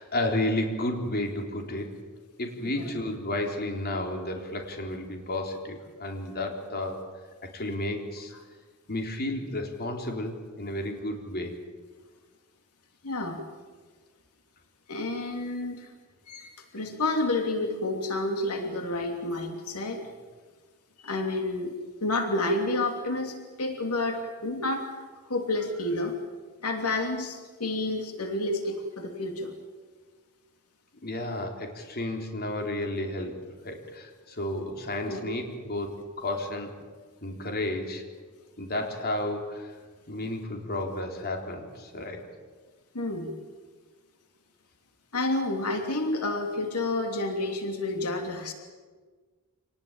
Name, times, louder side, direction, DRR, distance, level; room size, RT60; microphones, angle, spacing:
voice 1, 0.0-2.0 2.4-7.0 7.4-8.3 8.9-11.5 31.0-33.4 33.6-36.7 37.2-38.0 38.6-39.8 40.1-42.2, left 1 dB, 45° left, 3 dB, 3.7 m, -32 dB
voice 2, 13.0-13.4 14.9-15.9 16.3-20.0 21.0-21.7 22.0-24.9 25.3-26.2 26.6-29.5 35.1-35.2 42.9-43.3 45.1-48.5, left 2 dB, 85° left, 4 dB, 3.0 m, -29 dB
27.0 x 19.0 x 9.0 m, 1.4 s
head